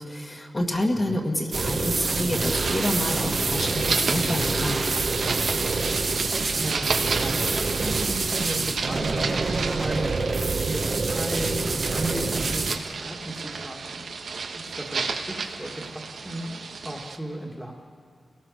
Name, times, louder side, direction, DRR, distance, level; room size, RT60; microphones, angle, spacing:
voice 1, 0.0-4.8, left 1 dB, 25° left, 0 dB, 2.1 m, -28 dB
sound 1, 1.5-12.8, right 3 dB, 45° right, 1.4 m, -26 dB
sound 2, 2.5-17.2, right 4 dB, 75° right, 1.5 m, -33 dB
voice 2, 6.4-10.1 10.4-14.0 14.5-17.7, right 1 dB, 5° right, 0 dB, 2.1 m, -35 dB
29.5 x 18.5 x 6.6 m, 2.3 s
wide cardioid pair, 120°, 0 cm